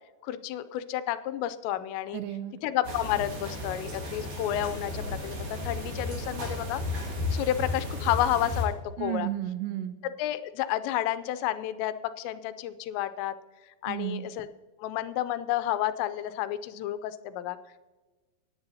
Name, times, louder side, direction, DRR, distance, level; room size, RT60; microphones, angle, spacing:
voice 1, 0.2-2.2 2.6-6.8 7.3-9.3 10.2-13.3 13.8-14.5 14.8-17.6, left 12 dB, 85° left, 12 dB, 2.8 m, -30 dB
voice 2, 2.1-2.6 9.0-10.0 13.9-14.2, right 13 dB, 85° right, 9 dB, 2.6 m, -33 dB
sound 1, 2.8-8.6, left 2 dB, 50° right, 4.0 m, -34 dB
17.5 x 10.5 x 2.7 m, 1.2 s
omnidirectional pair, 5.1 m